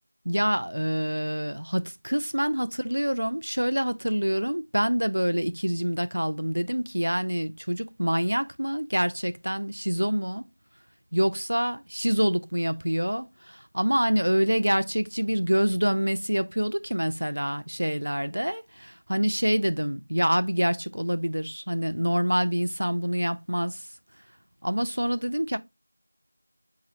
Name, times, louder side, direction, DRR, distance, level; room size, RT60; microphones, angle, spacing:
voice 1, 0.3-10.4 11.1-23.8 24.6-25.6, equal, 65° right, 0.4 m, -26 dB
4.8 x 4.2 x 2.4 m
figure-of-eight pair, 175°, 0 cm